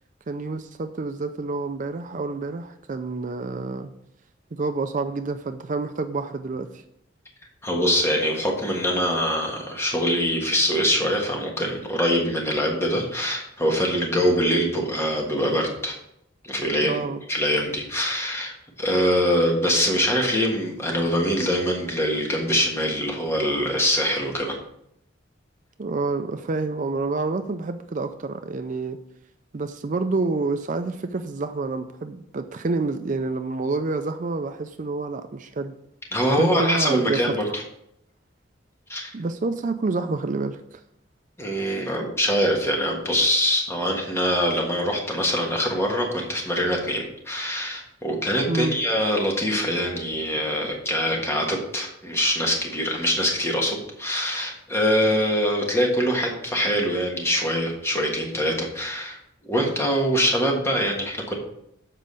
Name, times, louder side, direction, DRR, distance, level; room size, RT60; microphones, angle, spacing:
voice 1, 0.3-3.9 4.5-6.8 16.8-17.2 25.8-29.0 29.5-35.7 36.4-37.3 39.1-40.8 48.5-48.8, right 3 dB, 40° right, 8 dB, 0.4 m, -28 dB
voice 2, 7.6-15.9 16.4-17.0 17.3-24.5 36.1-37.6 38.9-39.1 41.4-59.2 59.4-61.3, equal, 15° left, 0 dB, 1.5 m, -24 dB
7.5 x 5.1 x 6.7 m, 0.77 s
head